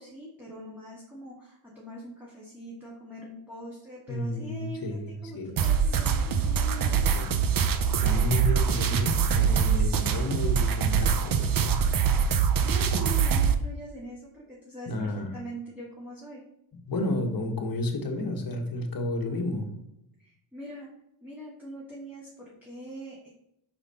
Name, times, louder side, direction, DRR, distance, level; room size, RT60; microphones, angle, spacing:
voice 1, 0.0-7.2 12.6-16.4 20.2-20.9 21.2-23.3, right 1 dB, 5° right, -6 dB, 2.0 m, -42 dB
voice 2, 4.1-5.7 7.1-7.4 8.0-11.8 14.9-15.4 16.9-19.8, left 1 dB, 45° left, 2 dB, 1.5 m, -32 dB
sound 1, 5.6-13.6, right 7 dB, 45° right, 0.7 m, -24 dB
5.7 x 5.0 x 4.2 m, 0.78 s
cardioid pair, 85°, 50 cm